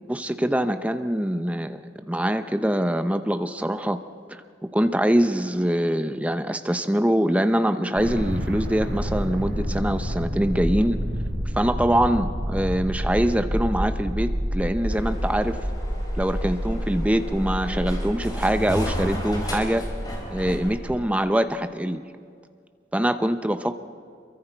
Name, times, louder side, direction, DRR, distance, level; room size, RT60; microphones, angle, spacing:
voice 1, 0.1-4.0 4.3-4.4 4.7-11.0 11.6-15.6 16.1-19.8 20.3-22.0 22.9-23.7, equal, 10° right, 9 dB, 0.7 m, -24 dB
sound 1, 7.9-21.0, equal, 80° right, 7.6 m, -29 dB
sound 2, 14.9-20.8, equal, 20° left, 4.1 m, -35 dB
28.0 x 23.0 x 4.6 m, 2.2 s
head